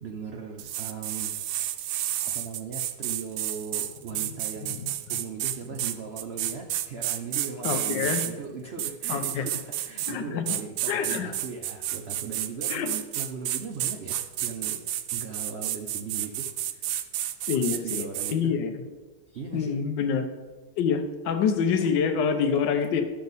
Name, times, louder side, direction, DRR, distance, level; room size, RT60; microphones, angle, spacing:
voice 1, 0.0-1.4 2.3-4.8 5.1-14.8 15.1-16.9 17.5-18.5 19.3-19.7, right 5 dB, 65° right, 2 dB, 0.6 m, -38 dB
sound 1, 0.6-8.3 8.8-10.2 10.5-18.3, right 12 dB, 85° right, 1.3 m, -31 dB
voice 2, 7.6-8.2 9.1-9.4 10.1-10.4 10.9-11.3 12.7-12.9 17.5-18.7 19.5-20.3 20.8-23.0, left 6 dB, 80° left, 7 dB, 1.4 m, -26 dB
11.5 x 6.7 x 4.0 m, 1.3 s
omnidirectional pair, 2.0 m